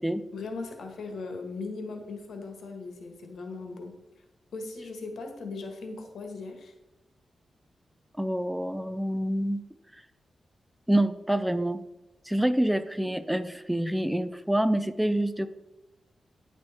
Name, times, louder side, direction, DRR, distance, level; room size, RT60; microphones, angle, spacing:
voice 1, 0.3-3.9 4.5-6.7, left 3 dB, 85° left, 4 dB, 1.5 m, -38 dB
voice 2, 8.2-9.6 10.9-11.8 12.3-15.5, right 1 dB, 5° right, 12 dB, 0.5 m, -27 dB
10.0 x 6.3 x 4.3 m, 0.97 s
wide cardioid pair, 95°, 0 cm